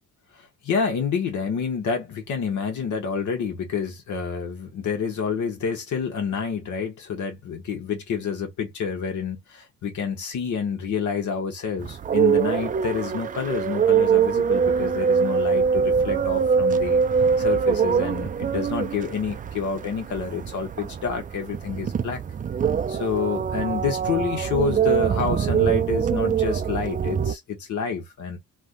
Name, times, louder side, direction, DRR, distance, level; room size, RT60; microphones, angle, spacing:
voice 1, 0.3-17.0 17.4-22.2 22.9-28.4, left 6 dB, 75° left, 1.0 m, -28 dB
sound 1, 11.8-27.3, right 7 dB, 30° right, 0.4 m, -23 dB
3.4 x 2.2 x 2.5 m
cardioid pair, 90°, 30 cm